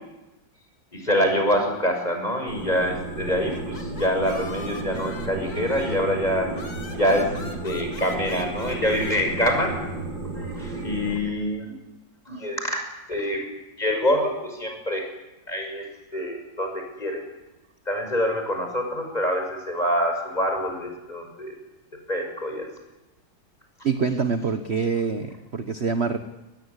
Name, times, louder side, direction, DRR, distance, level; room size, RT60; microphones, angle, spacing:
voice 1, 0.9-6.5 7.0-9.8 10.3-11.7 12.3-12.8 13.1-13.5 13.8-15.1 15.5-15.9 16.1-17.2 17.9-21.6 22.1-22.7, equal, 20° left, 3 dB, 6.3 m, -25 dB
sound 1, 2.5-11.2, right 2 dB, 75° right, 6.9 m, -33 dB
sound 2, 3.3-6.1 6.5-9.2, left 3 dB, 55° left, 3.1 m, -42 dB
voice 2, 23.8-26.2, right 5 dB, 40° right, 8 dB, 1.3 m, -25 dB
24.5 x 20.0 x 9.8 m, 1.0 s
omnidirectional pair, 2.0 m